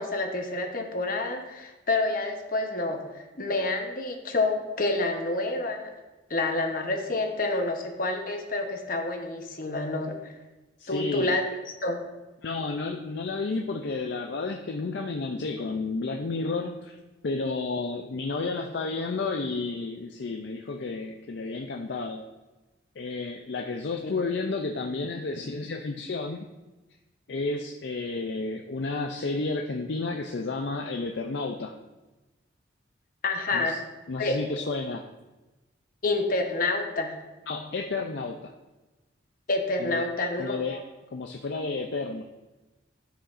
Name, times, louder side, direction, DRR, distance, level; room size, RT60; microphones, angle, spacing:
voice 1, 0.0-5.9 6.3-10.2 10.9-11.4 11.8-12.0 24.0-24.1 33.2-33.8 34.2-34.4 36.0-37.2 39.5-40.5, left 2 dB, 45° left, 3 dB, 0.9 m, -28 dB
voice 2, 10.8-11.4 12.4-17.0 17.2-22.2 23.0-26.5 27.3-31.8 33.5-33.8 34.1-35.1 37.5-38.5 39.8-40.0 40.4-40.8 41.1-42.2, left 3 dB, 65° left, 3 dB, 0.5 m, -31 dB
12.5 x 5.0 x 2.5 m, 1.1 s
head